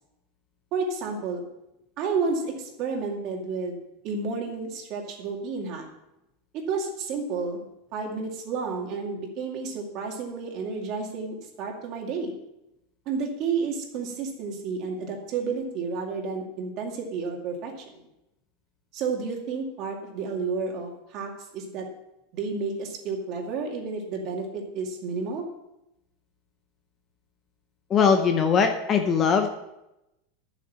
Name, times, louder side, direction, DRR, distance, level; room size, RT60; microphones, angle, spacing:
voice 1, 0.7-1.4 2.0-3.8 4.0-5.9 6.5-7.6 7.9-12.3 13.1-18.0 18.9-21.8 22.3-25.5, right 4 dB, 35° right, 1 dB, 2.3 m, -31 dB
voice 2, 27.9-29.5, left 6 dB, 25° left, 6 dB, 0.8 m, -21 dB
11.5 x 7.7 x 5.7 m, 0.88 s
supercardioid pair, 170°, 0 cm